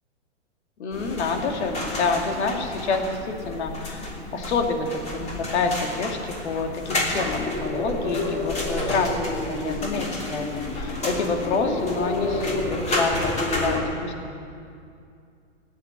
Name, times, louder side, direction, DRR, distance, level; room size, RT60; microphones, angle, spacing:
voice 1, 0.8-10.5 10.7-14.4, left 4 dB, 65° left, 4 dB, 2.5 m, -27 dB
sound 1, 0.9-13.8, left 2 dB, 20° left, 3.2 m, -29 dB
16.5 x 8.7 x 9.7 m, 2.4 s
hypercardioid pair, 125°, 36 cm